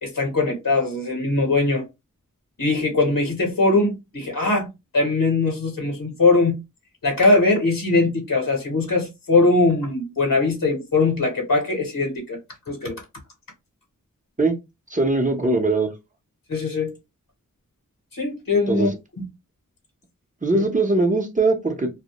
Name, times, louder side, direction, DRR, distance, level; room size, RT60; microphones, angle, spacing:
voice 1, 0.0-1.9 2.6-4.7 4.9-6.6 7.0-12.4 12.7-13.0 16.5-16.9 18.2-18.9 20.5-20.6, left 3 dB, 80° left, 0.9 m, -21 dB
voice 2, 14.9-15.9 18.7-19.0 20.4-21.9, right 2 dB, 25° right, 0.6 m, -21 dB
2.1 x 2.0 x 2.8 m
wide cardioid pair, 40°, 33 cm